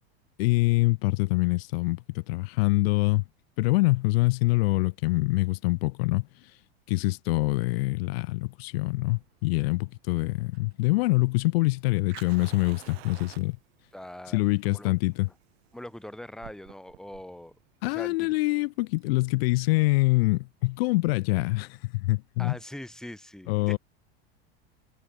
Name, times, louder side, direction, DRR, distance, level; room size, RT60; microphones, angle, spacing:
voice 1, 0.4-3.2 3.6-6.3 6.9-13.6 14.3-15.3 17.8-22.6 23.5-23.8, left 22 dB, 75° left, 0.5 m, -25 dB
Fire, 9.0-20.1, right 18 dB, 75° right, 6.5 m, -52 dB
voice 2, 13.9-14.4 14.7-14.9 15.7-17.5 17.8-18.3 22.4-23.8, left 1 dB, ahead, 1.7 m, -42 dB
supercardioid pair, 145°, 31 cm